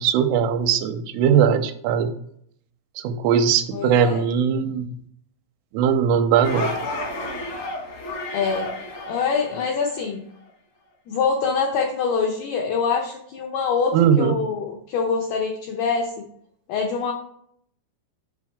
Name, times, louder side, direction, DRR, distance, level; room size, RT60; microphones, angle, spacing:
voice 1, 0.0-2.1 3.0-4.9 5.7-6.7 13.9-14.4, right 8 dB, 85° right, 8 dB, 3.1 m, -20 dB
voice 2, 3.7-4.2 8.3-8.7 9.1-10.2 11.1-16.1 16.7-17.1, left 5 dB, 85° left, 1 dB, 2.2 m, -24 dB
sound 1, 6.4-10.0, left 2 dB, 70° left, 1.5 m, -31 dB
8.9 x 5.4 x 3.5 m, 0.68 s
omnidirectional pair, 5.7 m